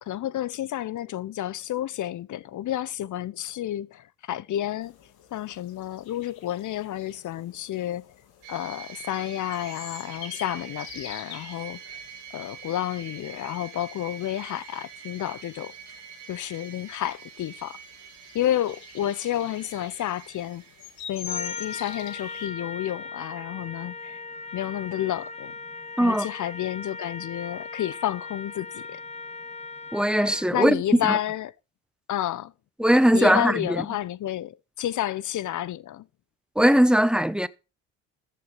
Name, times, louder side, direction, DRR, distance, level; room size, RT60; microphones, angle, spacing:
voice 1, 0.0-5.0 5.3-8.1 8.5-12.0 12.3-16.0 16.3-17.8 18.3-20.6 21.1-24.2 24.5-25.5 26.0-29.0 30.5-31.5 32.1-32.5 33.1-36.0, left 12 dB, 50° left, 0.7 m, -30 dB
sound 1, 4.8-22.5, left 9 dB, 70° left, 2.4 m, -45 dB
sound 2, 8.4-21.3, right 7 dB, 80° right, 3.0 m, -45 dB
Trumpet, 21.3-30.6, left 3 dB, 15° left, 1.2 m, -39 dB
voice 2, 29.9-30.8 31.1-31.2 32.8-33.8 36.6-37.5, equal, ahead, 0.8 m, -20 dB
14.0 x 6.6 x 5.2 m
hypercardioid pair, 55°, 39 cm